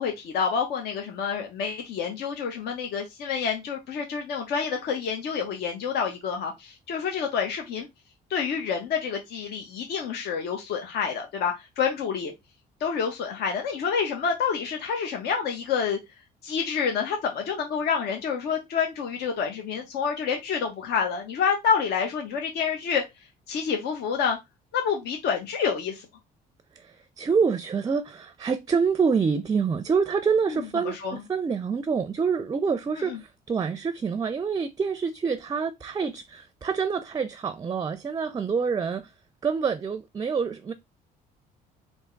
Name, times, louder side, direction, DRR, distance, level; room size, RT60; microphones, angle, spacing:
voice 1, 0.0-7.9 8.3-12.3 12.8-16.0 16.4-23.0 23.5-24.4 24.7-26.1 30.5-31.2 32.9-33.2, left 6 dB, 70° left, 1.1 m, -28 dB
voice 2, 26.7-39.1 39.4-40.7, right 5 dB, 25° right, 0.4 m, -26 dB
3.6 x 2.8 x 4.5 m
cardioid pair, 110°, 17 cm